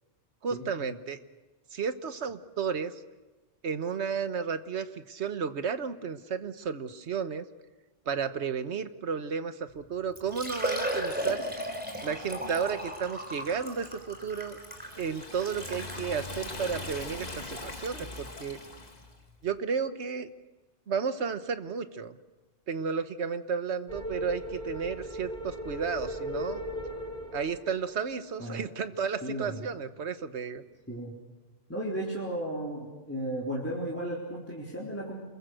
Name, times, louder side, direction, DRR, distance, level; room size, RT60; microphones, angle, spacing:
voice 1, 0.4-1.2 1.7-3.0 3.6-7.5 8.1-11.4 12.0-14.6 15.0-18.6 19.4-20.3 20.9-22.2 22.7-26.6 27.3-30.6, right 6 dB, 65° right, 10 dB, 1.4 m, -33 dB
Liquid, 9.7-9.8 10.2-16.0 16.7-16.8 17.3-17.4 19.0-19.1 19.3-19.4, equal, 10° right, 3.9 m, -35 dB
Liquid 2, 14.5-19.2, left 2 dB, 35° left, 1.9 m, -41 dB
sound 1, 23.9-28.3, equal, 35° right, 3.2 m, -38 dB
voice 2, 29.2-29.6 30.9-31.1 31.7-35.2, right 1 dB, 10° left, -5 dB, 4.0 m, -34 dB
29.0 x 22.0 x 6.5 m, 1.2 s
omnidirectional pair, 1.2 m